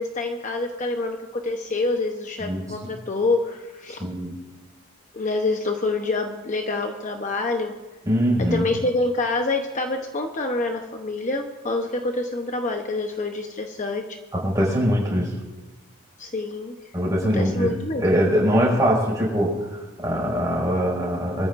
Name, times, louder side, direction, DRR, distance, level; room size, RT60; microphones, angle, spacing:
voice 1, 0.0-4.0 5.1-7.8 8.5-14.2 16.2-16.8 17.3-18.0, left 2 dB, 35° left, 3 dB, 0.9 m, -26 dB
voice 2, 2.4-2.9 3.9-4.4 8.0-8.7 14.3-15.3 16.9-21.5, equal, 15° right, -4 dB, 5.5 m, -23 dB
24.5 x 14.0 x 2.6 m, 1.2 s
head